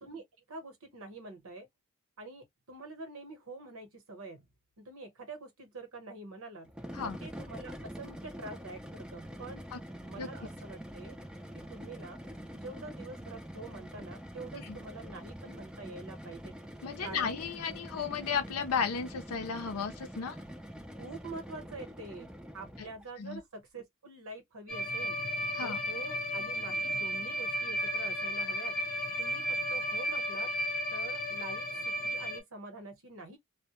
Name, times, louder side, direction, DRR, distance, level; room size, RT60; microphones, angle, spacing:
voice 1, 0.0-1.7 2.2-4.5 4.8-6.7 7.0-9.6 10.0-11.2 11.5-12.2 12.5-16.5 17.0-17.4 21.0-25.2 25.6-28.8 29.2-30.5 30.9-33.4, right 3 dB, 70° right, 1.0 m, -46 dB
sound 1, 6.7-23.1, equal, 5° right, 0.4 m, -45 dB
voice 2, 16.8-20.4 22.8-22.9 23.2-23.4 25.5-25.8, left 6 dB, 85° left, 0.5 m, -34 dB
sound 2, 24.7-32.4, equal, 45° left, 0.7 m, -34 dB
2.1 x 2.1 x 2.9 m
head